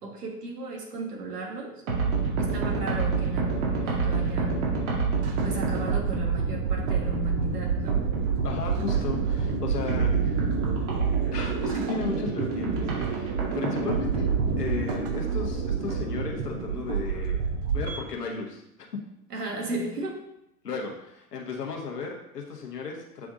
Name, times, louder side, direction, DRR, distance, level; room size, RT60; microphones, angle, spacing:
voice 1, 0.0-1.8 2.4-4.7 5.4-8.0 19.3-20.2, right 1 dB, 80° right, 1 dB, 1.5 m, -35 dB
sound 1, 1.6-18.0, right 6 dB, 40° right, 0.8 m, -37 dB
sound 2, 1.9-17.9, right 5 dB, 65° right, 2.2 m, -27 dB
voice 2, 8.4-10.5 11.3-14.3 14.6-17.4 17.7-18.6 20.6-23.3, left 5 dB, 85° left, 1 dB, 1.3 m, -35 dB
7.5 x 3.5 x 3.7 m, 0.80 s
figure-of-eight pair, 95°, 46 cm